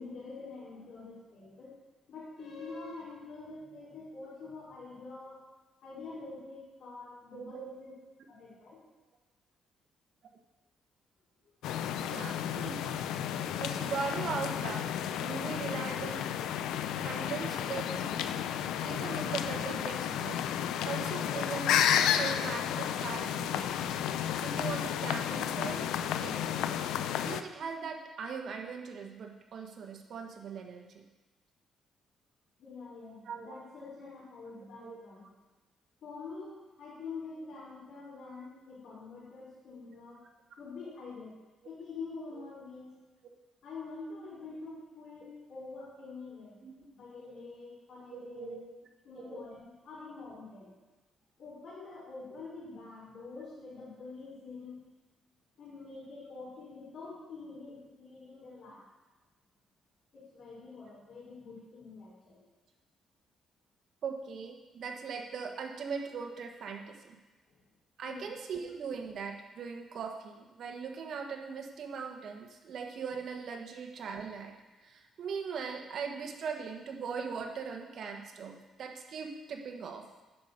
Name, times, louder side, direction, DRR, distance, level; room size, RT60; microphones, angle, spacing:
voice 1, 0.0-1.8 2.1-5.4 5.8-7.9 8.3-8.8 32.6-35.3 36.0-40.2 40.6-41.4 41.7-42.9 43.6-46.6 46.9-48.6 49.0-50.7 51.4-54.8 55.6-58.8 60.1-62.4 67.5-67.6 68.0-68.3, left 3 dB, 65° left, -9 dB, 3.6 m, -46 dB
voice 2, 7.3-7.8 12.0-13.0 13.6-14.9 15.1-16.3 17.0-18.4 18.8-20.4 20.9-23.7 24.4-25.9 26.2-26.4 27.2-31.0 33.2-33.6 34.8-35.0 42.3-42.4 46.6-46.7 47.2-47.4 48.1-48.6 49.1-49.4 52.3-52.4 64.0-67.2 68.0-74.5 74.8-80.0, right 5 dB, 65° right, 3 dB, 1.3 m, -40 dB
sound 1, 11.6-27.4, left 10 dB, 90° left, 0.4 m, -32 dB
10.5 x 5.1 x 6.5 m, 1.2 s
cardioid pair, 90°, 0 cm